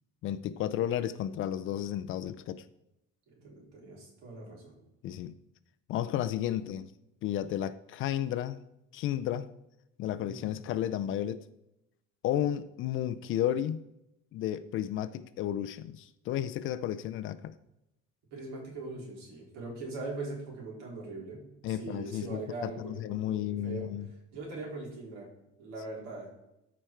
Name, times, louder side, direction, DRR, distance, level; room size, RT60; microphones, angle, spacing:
voice 1, 0.2-2.6 5.0-5.3 5.9-6.9 7.2-8.6 8.9-9.5 10.0-11.4 12.2-13.8 14.3-17.5 21.6-24.1, left 11 dB, 45° left, 0.4 m, -33 dB
voice 2, 3.3-4.8 10.1-10.5 18.3-23.9 24.3-25.3 25.6-26.3, right 2 dB, 65° right, 3.9 m, -41 dB
13.5 x 5.0 x 4.5 m
cardioid pair, 180°, 30 cm